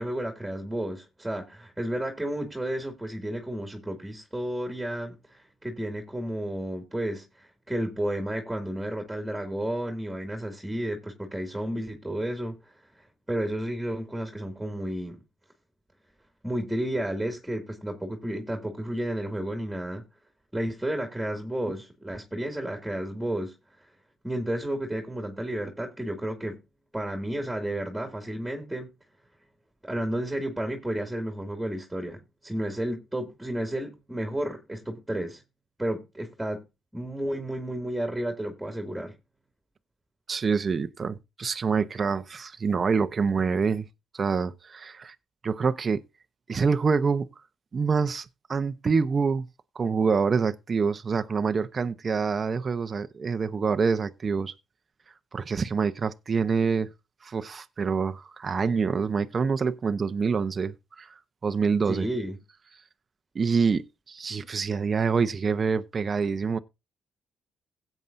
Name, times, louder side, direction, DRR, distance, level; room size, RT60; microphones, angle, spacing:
voice 1, 0.0-15.2 16.4-20.0 20.5-23.5 24.2-26.6 26.9-28.9 29.8-35.4 35.8-36.6 36.9-39.1 61.9-62.4, right 1 dB, 5° right, 2.4 m, -32 dB
voice 2, 40.3-43.9 44.1-45.1 45.4-46.0 46.5-47.3 47.7-49.5 49.7-54.6 55.3-56.9 57.2-61.1 61.4-62.1 63.3-63.8 64.1-66.6, right 5 dB, 40° right, 0.8 m, -26 dB
16.5 x 8.2 x 2.6 m
cardioid pair, 90°, 0 cm